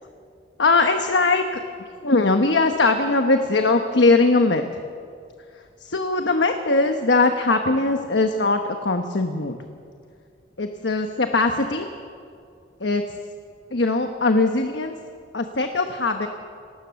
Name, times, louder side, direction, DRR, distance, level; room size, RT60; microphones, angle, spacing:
voice 1, 0.6-4.6 5.8-9.6 10.6-11.9 12.8-13.0 13.7-15.0 15.3-16.3, left 3 dB, 75° left, 5 dB, 1.2 m, -20 dB
25.5 x 19.0 x 7.1 m, 2.3 s
head